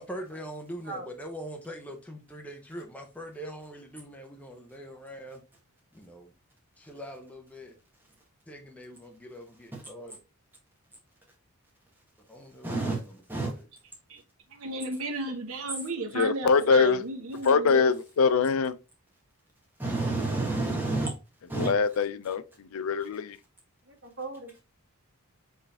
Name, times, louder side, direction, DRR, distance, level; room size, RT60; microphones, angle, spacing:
voice 1, 0.0-5.4 5.9-6.3 6.8-7.7 8.5-10.2 12.2-13.7, equal, 5° left, 0.6 m, -43 dB
voice 2, 12.6-13.0 13.3-13.5 19.8-21.1 21.5-21.7, right 2 dB, 10° right, 1.1 m, -29 dB
voice 3, 14.5-17.9, right 2 dB, 70° right, 0.8 m, -34 dB
voice 4, 16.2-17.0 17.4-18.7 21.6-23.4, left 5 dB, 70° left, 0.4 m, -23 dB
voice 5, 23.8-24.6, right 3 dB, 55° right, 1.4 m, -39 dB
4.5 x 3.3 x 3.4 m
head